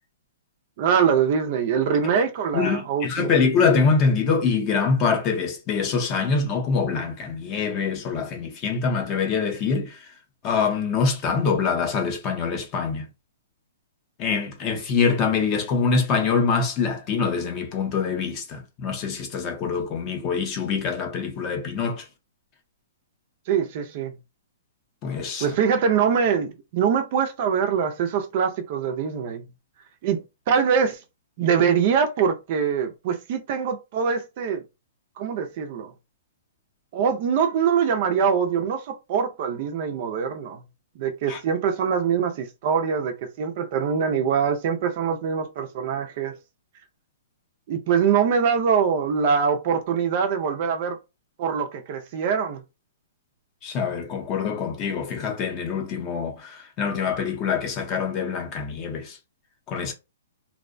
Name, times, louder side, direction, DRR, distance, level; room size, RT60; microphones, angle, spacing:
voice 1, 0.8-3.3 23.5-24.1 25.4-29.4 30.0-31.0 31.4-34.6 35.2-35.9 36.9-40.6 41.0-46.3 47.7-51.0 51.4-52.6, right 7 dB, 35° right, 0.4 m, -23 dB
voice 2, 2.5-10.0 10.4-13.1 14.2-22.0 25.0-25.5 41.3-41.4 53.6-59.2 59.7-59.9, left 5 dB, 25° left, 0.6 m, -24 dB
2.5 x 2.1 x 2.5 m
hypercardioid pair, 165°, 0 cm